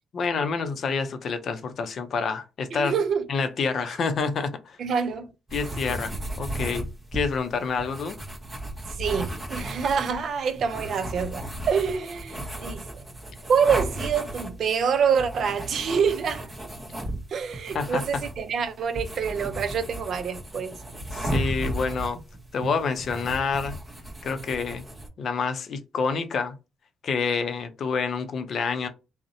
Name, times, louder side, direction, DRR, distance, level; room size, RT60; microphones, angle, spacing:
voice 1, 0.1-3.0 3.3-4.8 5.5-8.2 17.7-18.0 21.1-22.2 22.5-23.8 24.2-24.8 25.2-26.5 27.0-28.9, left 5 dB, 60° left, 0.5 m, -28 dB
voice 2, 2.7-3.2 3.9-4.0 4.8-5.3 8.9-13.0 13.4-16.5 17.3-20.8, right 6 dB, 60° right, 0.4 m, -26 dB
sound 1, 5.5-25.1, right 1 dB, 20° right, 0.8 m, -35 dB
2.5 x 2.0 x 2.6 m
cardioid pair, 90°, 0 cm